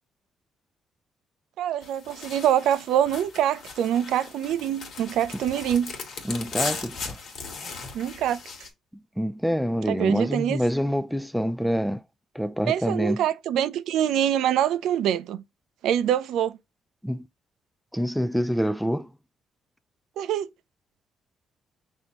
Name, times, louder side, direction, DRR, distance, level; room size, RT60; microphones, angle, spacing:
voice 1, 1.6-5.9 7.9-8.4 9.9-10.6 12.7-15.4 15.8-16.6 20.2-20.5, right 10 dB, 80° right, 0.4 m, -25 dB
sound 1, 1.8-8.7, left 4 dB, 65° left, 1.6 m, -37 dB
voice 2, 6.2-7.2 8.9-12.0 12.3-13.2 17.0-17.3 17.9-19.1, equal, ahead, 0.3 m, -26 dB
6.0 x 2.7 x 2.8 m
cardioid pair, 90°, 0 cm